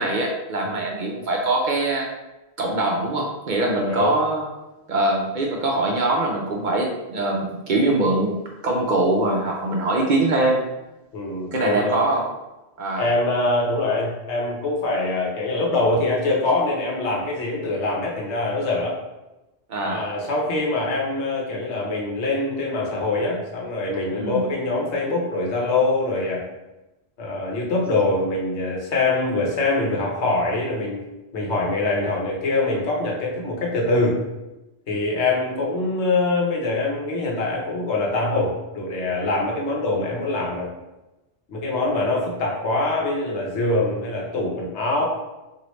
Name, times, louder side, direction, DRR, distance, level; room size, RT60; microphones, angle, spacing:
voice 1, 0.0-2.1 2.6-4.5 4.9-10.6 11.5-12.3 12.8-13.1 19.7-20.1 24.1-24.5, right 2 dB, 55° right, -1 dB, 0.6 m, -23 dB
voice 2, 3.7-4.1 11.1-12.0 13.0-19.0 19.8-26.4 27.2-31.0 31.3-34.2 34.9-40.7 41.5-45.0, left 2 dB, 85° left, -2 dB, 1.1 m, -24 dB
3.0 x 2.7 x 3.0 m, 1.0 s
omnidirectional pair, 1.1 m